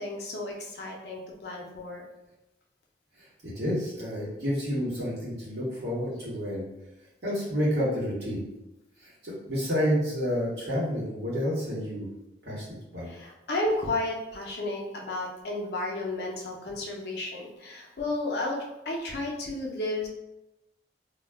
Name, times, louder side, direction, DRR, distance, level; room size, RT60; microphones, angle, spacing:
voice 1, 0.0-2.0 13.1-20.1, left 2 dB, 65° left, -1 dB, 0.5 m, -32 dB
voice 2, 3.2-6.7 7.2-8.5 9.0-12.1 12.4-12.6 12.9-13.1, equal, 65° right, -7 dB, 1.0 m, -29 dB
2.3 x 2.1 x 3.4 m, 0.95 s
head